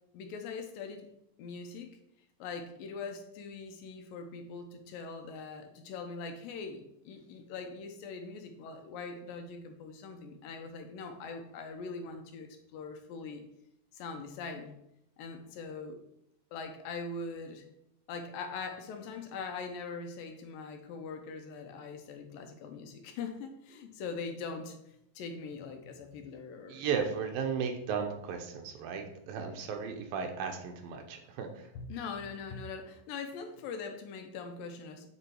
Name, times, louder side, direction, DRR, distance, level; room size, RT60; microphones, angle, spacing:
voice 1, 0.1-1.1 1.4-1.9 2.4-13.4 13.9-14.7 15.2-16.0 16.5-17.7 18.1-24.8 25.2-26.8 31.7-35.1, left 4 dB, 80° left, 6 dB, 2.3 m, -42 dB
voice 2, 26.7-31.7, right 6 dB, 80° right, 4 dB, 2.5 m, -35 dB
8.3 x 3.8 x 4.5 m, 0.79 s
omnidirectional pair, 4.3 m